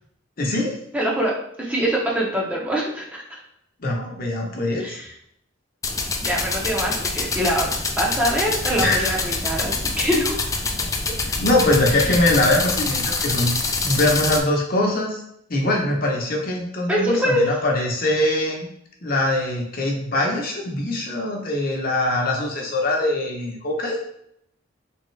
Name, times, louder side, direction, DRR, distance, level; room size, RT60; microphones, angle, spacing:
voice 1, 0.4-0.8 3.8-5.0 8.7-9.3 11.4-13.5 13.8-15.2 15.5-18.7 19.0-24.0, left 1 dB, 45° left, -1 dB, 0.8 m, -22 dB
voice 2, 0.9-3.4 4.8-5.1 6.2-10.5 11.9-12.1 16.9-17.4, equal, 5° right, -3 dB, 0.7 m, -24 dB
sound 1, 5.8-14.4, left 3 dB, 15° left, 0.3 m, -25 dB
3.6 x 3.5 x 3.2 m, 0.72 s
head